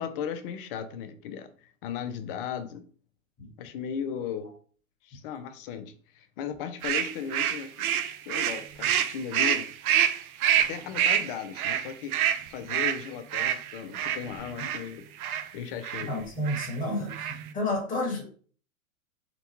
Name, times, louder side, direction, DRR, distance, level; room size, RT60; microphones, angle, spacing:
voice 1, 0.0-2.8 3.6-4.5 5.0-9.7 10.7-16.1, left 8 dB, 45° left, 10 dB, 0.5 m, -37 dB
sound 1, 6.8-14.8 15.2-15.5 15.8-16.1 16.5-16.7 17.0-17.5, right 10 dB, 85° right, 0.5 m, -27 dB
voice 2, 16.1-18.2, left 1 dB, 20° left, -1 dB, 1.3 m, -30 dB
3.9 x 2.2 x 2.8 m, 0.43 s
hypercardioid pair, 115°, 42 cm